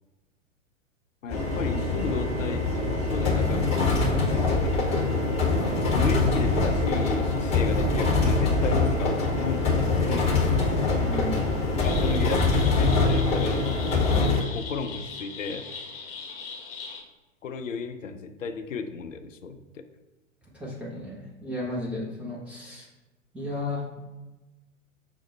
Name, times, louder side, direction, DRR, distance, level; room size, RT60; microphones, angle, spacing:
voice 1, 1.2-2.7 2.9-4.9 5.9-10.5 11.8-15.7 17.4-19.8, left 5 dB, 70° left, 8 dB, 0.5 m, -34 dB
sound 1, 1.3-14.4, left 3 dB, 15° left, 0.8 m, -24 dB
voice 2, 11.0-11.4 20.5-22.9 23.3-23.8, left 1 dB, 5° right, -7 dB, 0.4 m, -33 dB
sound 2, 11.8-17.0, left 5 dB, 45° left, 0.8 m, -39 dB
5.8 x 2.1 x 4.2 m, 1.1 s
figure-of-eight pair, 105°, 39 cm